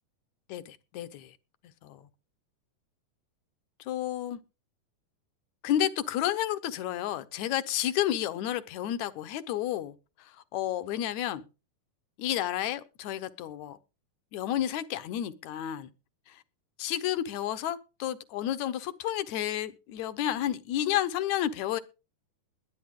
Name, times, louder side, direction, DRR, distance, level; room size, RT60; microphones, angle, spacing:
voice 1, 0.5-1.4 1.8-2.1 3.8-4.4 5.6-11.5 12.2-13.8 14.3-15.9 16.3-16.4 16.8-21.8, left 12 dB, 70° left, 2.1 m, -31 dB
21.0 x 9.1 x 3.7 m
omnidirectional pair, 3.7 m